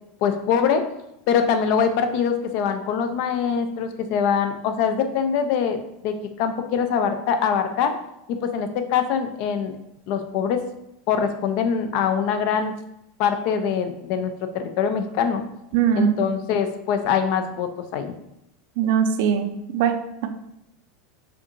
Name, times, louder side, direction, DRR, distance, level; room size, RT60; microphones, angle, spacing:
voice 1, 0.2-0.8 1.3-5.8 6.0-6.1 6.4-8.0 8.3-9.7 10.1-10.6 11.1-12.7 13.2-15.4 16.0-18.1, left 7 dB, 60° left, 7 dB, 0.4 m, -23 dB
voice 2, 15.7-16.2 18.8-20.0, right 8 dB, 65° right, 7 dB, 0.4 m, -21 dB
4.4 x 2.6 x 2.5 m, 0.83 s
hypercardioid pair, 105°, 0 cm